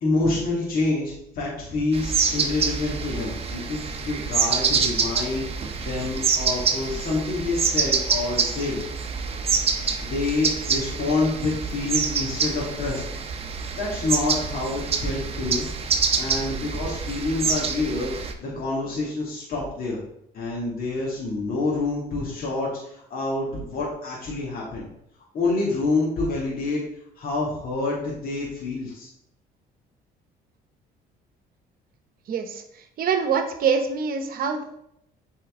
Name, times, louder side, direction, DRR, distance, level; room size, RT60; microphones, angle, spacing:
voice 1, 0.0-5.4 5.8-8.8 10.0-13.0 13.7-15.7 16.2-20.0 20.3-24.9 25.3-26.8 27.2-29.1, left 3 dB, 60° left, -6 dB, 2.2 m, -27 dB
sound 1, 1.9-18.3, right 5 dB, 35° right, 0.8 m, -26 dB
voice 2, 32.3-32.6 33.0-34.6, right 6 dB, 60° right, 7 dB, 1.0 m, -24 dB
8.3 x 4.4 x 3.7 m, 0.77 s
cardioid pair, 110°, 17 cm